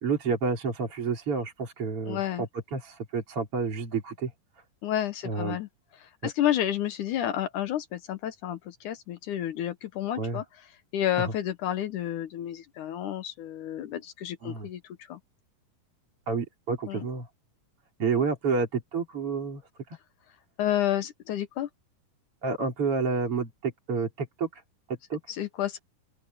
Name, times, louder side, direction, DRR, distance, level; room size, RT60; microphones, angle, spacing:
voice 1, 0.0-4.3 5.2-5.6 6.2-6.3 10.2-10.4 11.2-11.3 14.4-14.7 16.3-17.3 18.0-19.6 22.4-24.6 24.9-25.2, right 4 dB, 40° right, 4.4 m, -29 dB
voice 2, 2.1-2.4 4.8-5.7 6.2-10.4 10.9-14.8 15.1-15.2 16.9-17.1 20.6-21.7 25.3-25.8, left 11 dB, 70° left, 2.4 m, -30 dB
open air
omnidirectional pair, 3.9 m